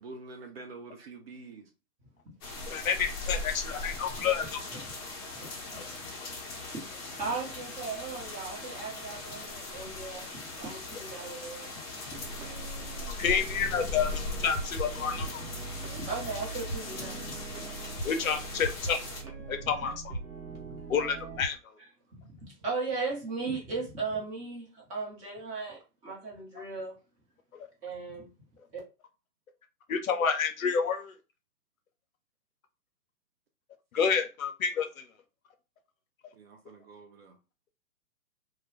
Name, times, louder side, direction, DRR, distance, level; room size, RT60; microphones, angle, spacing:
voice 1, 0.0-1.7 36.3-37.4, right 3 dB, 40° right, 0.5 m, -46 dB
sound 1, 2.4-19.2, left 3 dB, 25° left, 0.7 m, -40 dB
voice 2, 2.7-4.6 5.7-5.9 13.0-15.4 18.0-19.0 19.5-19.9 20.9-21.6 29.9-31.1 33.9-35.0, left 6 dB, 60° left, 0.6 m, -29 dB
voice 3, 7.2-10.3 10.6-11.7 12.0-12.3 15.2-17.4 19.4-19.9 20.5-20.8 22.2-27.0 27.8-28.3, right 4 dB, 15° right, 0.9 m, -37 dB
sound 2, 12.1-21.5, right 2 dB, 75° right, 0.9 m, -40 dB
2.3 x 2.2 x 3.1 m
figure-of-eight pair, 120°, 46 cm